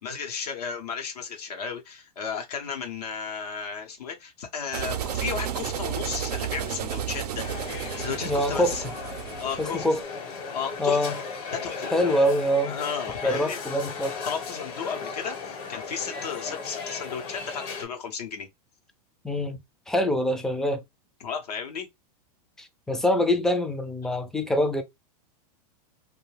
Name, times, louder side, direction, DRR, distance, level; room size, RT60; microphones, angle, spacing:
voice 1, 0.0-7.4 8.0-8.8 9.4-9.8 10.5-11.2 11.5-11.9 12.7-13.6 14.3-18.5 21.2-21.9, left 6 dB, 85° left, 0.8 m, -34 dB
sound 1, 4.7-10.0, right 9 dB, 85° right, 0.5 m, -32 dB
sound 2, 7.4-17.8, left 5 dB, 55° left, 1.0 m, -36 dB
voice 2, 8.2-8.8 9.6-10.0 10.8-11.2 11.9-12.8 13.2-14.1 19.2-19.6 19.9-20.8 22.9-24.8, left 1 dB, 5° left, 0.3 m, -24 dB
2.3 x 2.2 x 3.2 m
hypercardioid pair, 125°, 20 cm